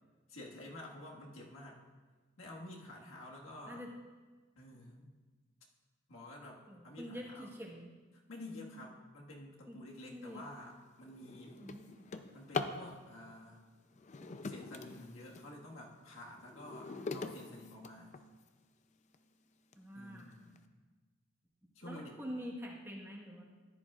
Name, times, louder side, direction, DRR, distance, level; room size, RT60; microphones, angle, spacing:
voice 1, 0.3-1.8 2.4-3.8 4.6-5.1 6.1-7.5 8.3-11.6 12.3-13.6 14.4-18.2 19.9-20.6 21.7-22.2, left 1 dB, 80° left, -2 dB, 1.6 m, -50 dB
voice 2, 6.7-7.9 9.7-9.8 10.1-10.4 11.6-11.9 16.9-17.1 19.8-20.3 21.8-23.4, equal, 10° right, -2 dB, 1.3 m, -46 dB
Drawer open or close, 10.2-10.4 10.9-12.9 13.9-15.5 16.0-18.5 19.1-19.2 19.7-19.8 20.2-20.6, left 4 dB, 35° left, 0.4 m, -43 dB
14.5 x 10.5 x 2.4 m, 1.3 s
head